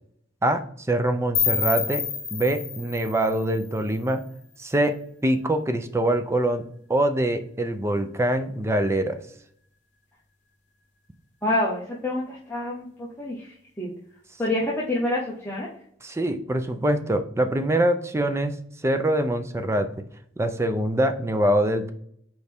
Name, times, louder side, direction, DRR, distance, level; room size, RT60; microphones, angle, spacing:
voice 1, 0.9-2.0 2.3-4.2 4.6-6.6 6.9-9.2 16.0-18.5 18.8-19.9 20.4-21.9, right 1 dB, 15° right, 9 dB, 0.5 m, -24 dB
sound 1, 1.3-4.3, left 7 dB, 45° left, 1.5 m, -29 dB
voice 2, 11.4-13.4 13.8-13.9 14.4-15.7, left 1 dB, 10° left, -6 dB, 1.1 m, -27 dB
6.4 x 4.6 x 3.5 m, 0.67 s
head